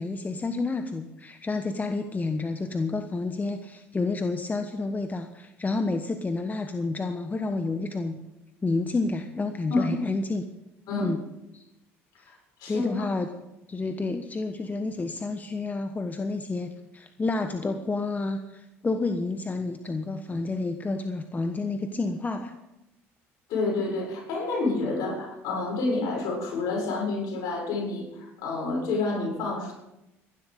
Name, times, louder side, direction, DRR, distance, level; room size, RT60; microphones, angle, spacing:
voice 1, 0.0-8.2 8.6-10.4 11.0-11.2 11.5-11.6 12.2-12.3 12.6-13.3 13.7-22.5, left 3 dB, 25° left, 7 dB, 1.2 m, -30 dB
voice 2, 23.5-29.7, left 3 dB, 60° left, 0 dB, 6.9 m, -28 dB
17.0 x 11.5 x 5.4 m, 0.90 s
hypercardioid pair, 65°, 7 cm